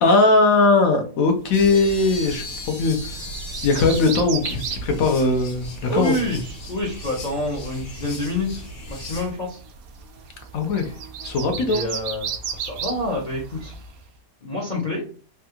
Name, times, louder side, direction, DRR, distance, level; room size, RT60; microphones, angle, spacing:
voice 1, 0.0-3.1 3.6-6.1 10.5-10.9 11.2-11.8, left 3 dB, 65° left, 4 dB, 1.0 m, -19 dB
sound 1, 1.5-9.3, left 1 dB, 90° left, 1.6 m, -36 dB
sound 2, 1.6-14.0, right 7 dB, 70° right, 0.9 m, -36 dB
voice 2, 5.9-9.6 11.7-13.7 14.4-15.1, left 1 dB, 45° left, -3 dB, 0.6 m, -27 dB
3.4 x 2.3 x 2.8 m, 0.40 s
omnidirectional pair, 1.8 m